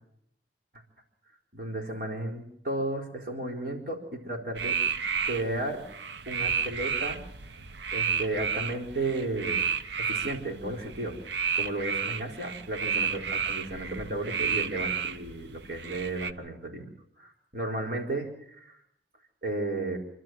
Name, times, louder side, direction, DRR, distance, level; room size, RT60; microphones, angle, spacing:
voice 1, 1.5-4.8 5.2-5.8 6.3-7.2 7.9-9.6 10.0-11.2 11.5-16.9 17.2-18.8 19.4-20.0, right 2 dB, 50° right, 0 dB, 4.4 m, -33 dB
sound 1, 4.6-16.3, right 6 dB, 75° right, 0.9 m, -31 dB
27.5 x 12.5 x 7.7 m, 0.75 s
head